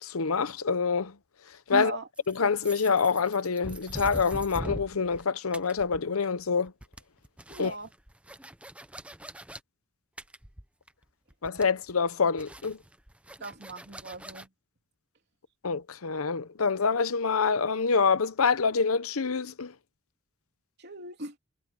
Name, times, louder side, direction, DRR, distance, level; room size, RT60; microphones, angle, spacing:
voice 1, 0.0-1.1 1.7-2.0 2.3-6.7 7.6-7.7 11.4-12.8 15.6-19.7, left 5 dB, 85° left, 0.9 m, -26 dB
voice 2, 1.7-2.1 7.5-7.9 13.4-14.5 20.8-21.4, right 2 dB, 50° right, 3.5 m, -38 dB
sound 1, 2.2-5.2 5.5-6.4 6.7-9.6 10.2-11.0 11.3-11.9 12.4-14.5, right 1 dB, 5° right, 0.8 m, -42 dB
head